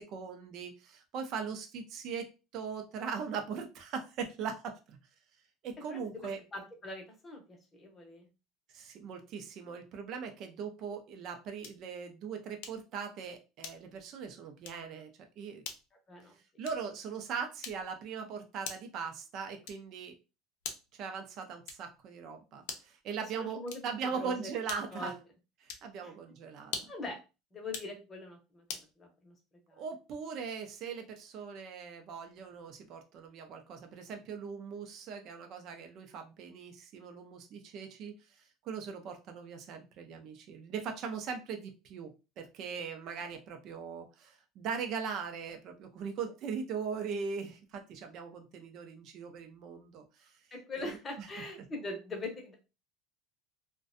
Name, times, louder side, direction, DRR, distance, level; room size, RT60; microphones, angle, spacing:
voice 1, 0.0-5.0 5.6-6.4 8.7-15.6 16.6-20.1 20.9-25.1 25.6-26.9 29.8-38.1 38.6-50.3 50.8-51.3, right 6 dB, 45° right, 6 dB, 0.5 m, -40 dB
voice 2, 5.9-8.3 16.1-16.4 23.3-24.5 24.9-25.2 26.0-26.1 26.9-27.2 27.5-29.3 29.7-29.8 50.5-52.5, left 2 dB, 20° left, 2 dB, 0.7 m, -42 dB
sound 1, 11.6-11.9 12.6-12.9 13.6-14.0 14.6-14.9 15.6-15.9 16.6-17.0 17.6-18.0 18.6-19.0 19.6-20.0 20.6-21.0 21.6-22.0 22.6-23.0 23.6-24.0 24.6-25.1 25.6-25.9 26.6-27.1 27.6-28.0 28.7-28.9, left 6 dB, 75° left, 0.5 m, -44 dB
2.5 x 2.2 x 2.5 m, 0.29 s
cardioid pair, 155°, 0 cm